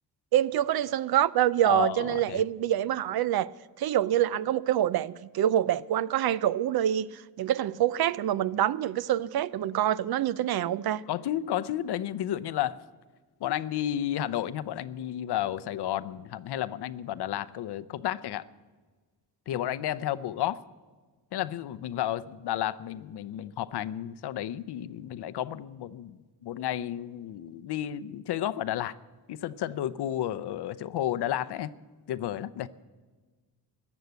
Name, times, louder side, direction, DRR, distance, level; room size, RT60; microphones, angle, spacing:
voice 1, 0.3-3.5 3.8-11.0, right 11 dB, 60° right, 0.5 m, -26 dB
voice 2, 1.6-2.4 11.1-12.8 13.4-18.4 19.5-20.6 21.3-26.2 26.4-28.9 29.3-31.7 32.1-32.7, left 12 dB, 65° left, 0.7 m, -32 dB
14.5 x 10.5 x 8.1 m
cardioid pair, 95°, 43 cm